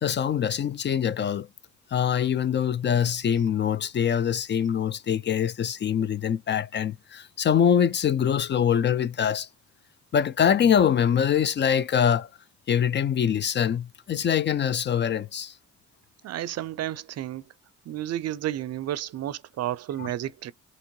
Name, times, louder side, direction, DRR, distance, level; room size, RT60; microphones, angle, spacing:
voice 1, 0.0-1.5 1.9-9.5 10.1-12.3 12.7-15.5 20.0-20.1, left 8 dB, 40° left, 0.4 m, -24 dB
voice 2, 16.2-17.4 17.9-20.5, right 12 dB, 55° right, 0.5 m, -31 dB
3.5 x 2.9 x 4.5 m
cardioid pair, 90°, 30 cm